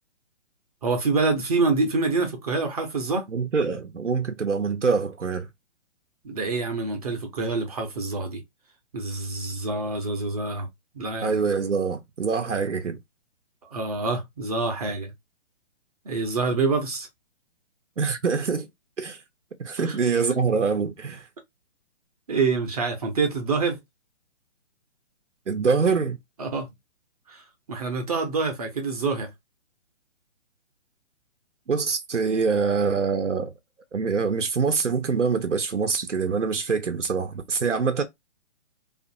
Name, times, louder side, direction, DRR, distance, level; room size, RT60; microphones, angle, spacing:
voice 1, 0.8-3.2 6.2-8.4 8.9-10.7 10.9-11.4 13.7-15.1 16.1-17.1 19.8-20.0 22.3-23.8 26.4-26.7 27.3-29.3, right 3 dB, 35° right, 0.6 m, -26 dB
voice 2, 3.3-5.5 11.2-13.0 18.0-18.7 19.0-19.2 19.6-21.3 25.5-26.2 31.7-33.5 33.9-38.0, right 5 dB, 90° right, 0.6 m, -25 dB
2.6 x 2.4 x 2.6 m
figure-of-eight pair, 130°, 35 cm